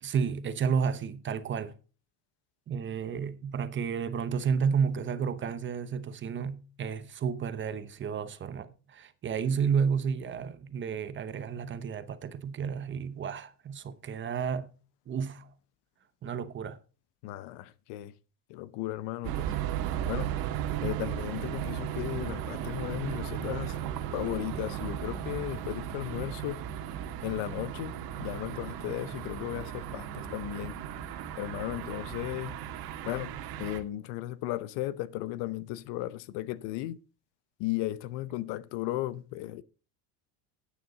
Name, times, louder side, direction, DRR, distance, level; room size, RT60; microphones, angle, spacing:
voice 1, 0.0-1.8 2.7-14.7 15.1-15.5 16.2-16.8, right 6 dB, 25° right, 0.8 m, -31 dB
voice 2, 17.2-18.1 18.5-19.5 20.1-20.3 20.8-23.8 24.1-26.6 27.2-30.8 31.4-32.6 33.0-37.0 37.6-39.6, left 15 dB, 70° left, 0.8 m, -35 dB
sound 1, 19.2-33.8, right 10 dB, 55° right, 1.7 m, -36 dB
10.5 x 9.4 x 3.9 m
cardioid pair, 145°, 43 cm